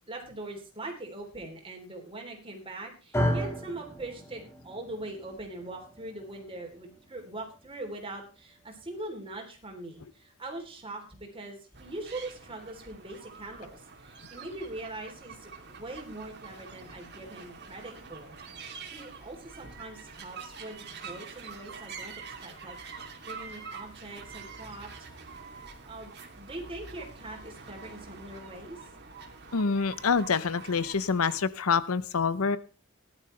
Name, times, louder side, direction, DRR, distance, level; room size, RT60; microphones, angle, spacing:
voice 1, 0.1-18.4 18.9-24.9 25.8-28.8, right 2 dB, 25° right, 2 dB, 3.4 m, -42 dB
sound 1, 3.1-11.4, equal, 10° left, 1.7 m, -37 dB
sound 2, 11.7-31.4, right 5 dB, 50° right, 2.6 m, -46 dB
voice 2, 29.5-32.6, left 5 dB, 85° left, 16 dB, 0.7 m, -26 dB
18.0 x 11.5 x 3.3 m, 0.35 s
head